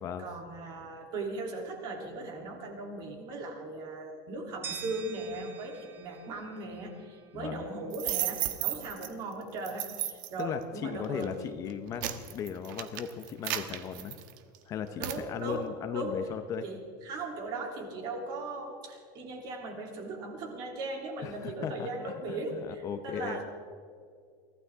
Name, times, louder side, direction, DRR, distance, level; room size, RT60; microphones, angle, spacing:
voice 1, 0.2-11.5 15.0-15.6 15.9-16.2 16.6-23.4, right 2 dB, 40° right, 2 dB, 3.2 m, -38 dB
sound 1, 4.6-7.6, right 7 dB, 20° right, 1.1 m, -46 dB
voice 2, 7.3-7.7 10.4-14.1 14.7-16.6 21.2-23.4, left 7 dB, 30° left, 8 dB, 0.8 m, -37 dB
sound 2, 7.9-9.1 9.6-10.4 11.0-11.3 11.7-14.6 15.0-15.2, right 13 dB, 75° right, 1.2 m, -34 dB
23.5 x 16.0 x 3.6 m, 2.1 s
supercardioid pair, 165°, 11 cm